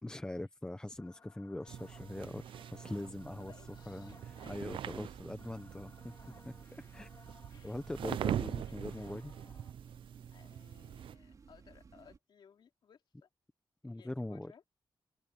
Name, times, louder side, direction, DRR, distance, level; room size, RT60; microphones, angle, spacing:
voice 1, 0.0-2.4 2.7-3.5 3.9-6.1 6.4-7.1 7.6-9.3 13.8-14.5, left 1 dB, 10° left, 0.8 m, -42 dB
sound 1, 0.9-9.7, left 4 dB, 35° left, 2.4 m, -62 dB
sound 2, 1.7-11.1, right 10 dB, 85° right, 0.5 m, -42 dB
sound 3, 3.3-12.2, right 5 dB, 45° right, 3.7 m, -58 dB
voice 2, 3.4-4.8 7.5-7.8 8.4-9.6 10.3-13.3 13.8-14.6, left 7 dB, 65° left, 3.0 m, -62 dB
wide cardioid pair, 165°, 8 cm